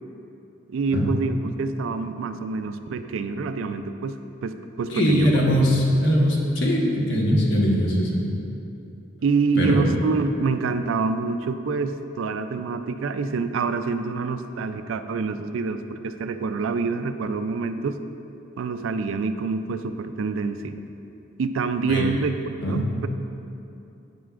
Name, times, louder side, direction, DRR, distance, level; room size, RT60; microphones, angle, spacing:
voice 1, 0.7-5.3 9.2-18.0 18.6-20.8 21.4-23.1, right 4 dB, 80° right, 10 dB, 0.4 m, -26 dB
voice 2, 4.9-8.2 9.6-9.8 21.9-22.0 22.6-22.8, equal, 65° left, -2 dB, 1.2 m, -21 dB
9.2 x 8.2 x 2.5 m, 2.8 s
head